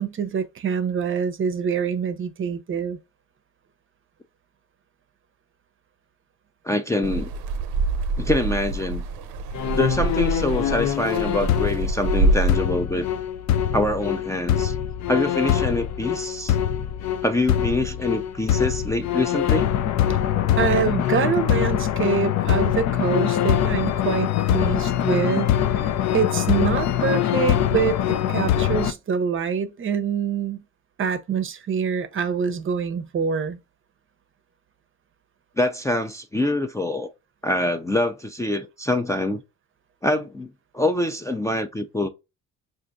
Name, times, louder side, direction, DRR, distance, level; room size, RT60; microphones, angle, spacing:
voice 1, 0.0-3.0 20.1-20.2 20.6-25.8 26.1-30.6 31.0-33.6, right 6 dB, 45° right, 0.6 m, -25 dB
voice 2, 6.6-7.3 8.2-9.0 9.8-13.1 13.7-14.8 15.1-16.6 17.2-19.7 35.6-37.1 37.4-39.4 40.0-40.5 40.7-42.1, left 1 dB, 10° left, 0.4 m, -25 dB
sound 1, 7.0-12.6, right 2 dB, 85° right, 0.6 m, -25 dB
sound 2, 9.5-28.9, left 10 dB, 65° left, 0.5 m, -23 dB
4.9 x 2.5 x 2.5 m
cardioid pair, 90°, 30 cm